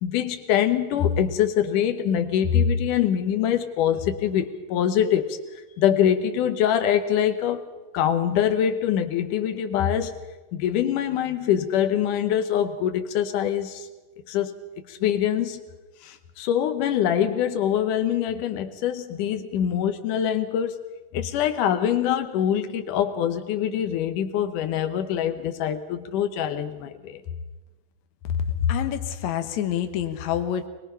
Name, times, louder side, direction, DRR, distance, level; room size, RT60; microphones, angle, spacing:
voice 1, 0.0-5.4 5.8-10.2 10.5-13.9 14.3-14.5 14.9-15.6 16.0-20.8 21.1-27.2, left 9 dB, 90° left, 2.6 m, -24 dB
voice 2, 28.3-30.7, left 9 dB, 70° left, 2.5 m, -26 dB
22.0 x 21.5 x 5.6 m
omnidirectional pair, 3.5 m